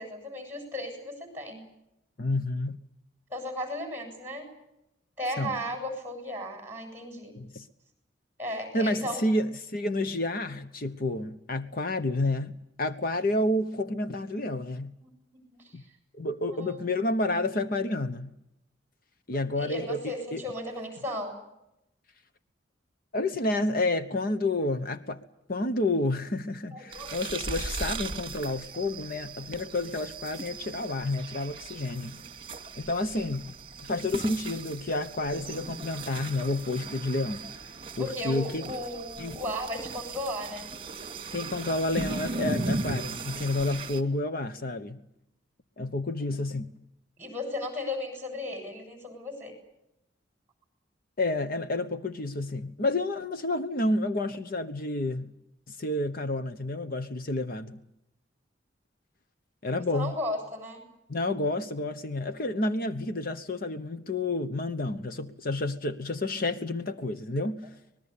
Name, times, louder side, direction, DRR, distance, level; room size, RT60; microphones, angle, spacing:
voice 1, 0.0-1.6 3.3-4.5 5.2-7.3 8.4-9.2 15.0-15.9 16.5-16.9 19.6-21.4 26.7-27.2 33.9-34.0 38.0-40.7 47.2-49.5 59.9-60.8, left 1 dB, 15° right, 7.8 m, -35 dB
voice 2, 2.2-2.8 5.4-5.6 7.4-7.7 8.7-14.9 15.7-15.8 16.1-18.3 19.3-20.4 23.1-25.2 25.5-32.2 32.8-33.5 33.9-37.4 38.0-38.7 39.2-39.4 41.3-45.0 45.8-46.7 51.2-55.3 55.7-57.8 59.6-60.1 61.1-67.6, left 2 dB, 55° left, 1.1 m, -30 dB
sound 1, 26.9-44.0, right 3 dB, 30° right, 2.4 m, -37 dB
25.0 x 20.5 x 8.5 m
head